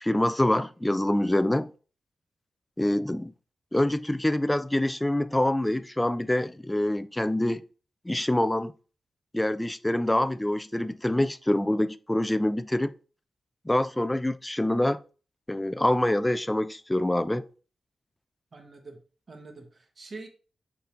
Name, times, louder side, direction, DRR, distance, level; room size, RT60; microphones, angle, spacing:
voice 1, 0.0-1.7 2.8-3.3 3.7-7.6 8.1-8.7 9.3-12.9 13.7-15.0 15.5-17.4, left 1 dB, 10° left, 0.3 m, -25 dB
voice 2, 18.5-19.0 19.3-20.3, right 3 dB, 35° right, 1.2 m, -44 dB
7.3 x 4.1 x 3.8 m
wide cardioid pair, 160°, 0 cm